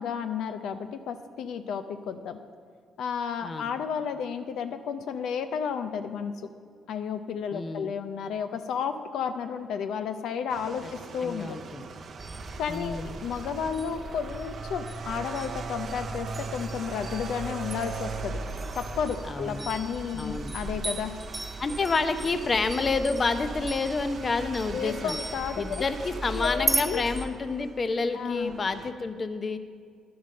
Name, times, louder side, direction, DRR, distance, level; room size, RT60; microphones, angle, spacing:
voice 1, 0.0-2.4 3.0-6.3 6.9-11.6 12.6-18.4 18.8-21.1 24.7-25.8 26.3-27.0 28.1-28.5, left 7 dB, 80° left, 8 dB, 0.6 m, -32 dB
voice 2, 7.5-7.9 11.2-11.9 12.7-13.1 19.3-19.6 20.1-20.5 21.6-25.2 25.6-29.6, left 4 dB, 35° left, 10 dB, 0.7 m, -29 dB
sound 1, 10.5-28.9, right 5 dB, 55° right, 0.7 m, -41 dB
sound 2, 12.2-27.3, right 2 dB, 20° right, 1.3 m, -37 dB
10.5 x 7.9 x 6.5 m, 2.1 s
cardioid pair, 90°, 0 cm